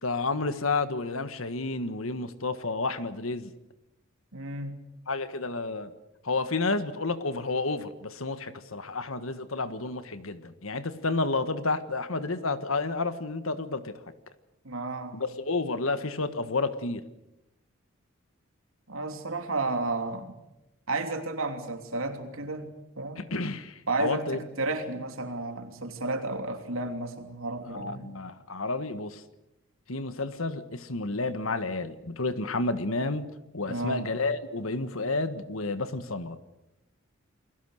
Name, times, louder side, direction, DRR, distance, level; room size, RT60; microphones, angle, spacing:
voice 1, 0.0-3.5 5.1-5.9 6.2-14.0 15.1-17.0 23.2-24.4 27.7-29.2 29.9-33.3 33.5-36.4, left 3 dB, 80° left, 11 dB, 1.6 m, -30 dB
voice 2, 4.3-4.8 14.6-15.2 18.9-20.4 20.9-22.7 23.0-23.2 23.9-28.1 33.7-34.1, right 2 dB, 80° right, 6 dB, 3.1 m, -32 dB
29.0 x 21.0 x 6.6 m, 0.91 s
head